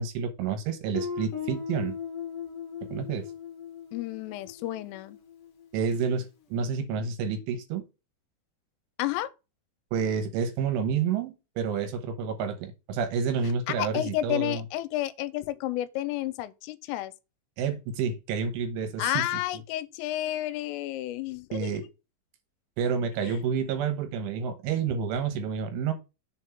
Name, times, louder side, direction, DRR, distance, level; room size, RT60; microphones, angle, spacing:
voice 1, 0.0-2.0 2.9-3.2 5.7-7.8 9.9-14.6 17.6-19.3 21.5-21.8 22.8-25.9, right 6 dB, 75° right, 3.4 m, -29 dB
Guitar, 0.9-5.6, left 7 dB, 60° left, 2.4 m, -38 dB
voice 2, 3.9-5.2 9.0-9.3 13.7-17.1 19.0-21.9 23.2-23.4, left 14 dB, 85° left, 3.2 m, -31 dB
7.1 x 3.6 x 5.7 m
omnidirectional pair, 5.8 m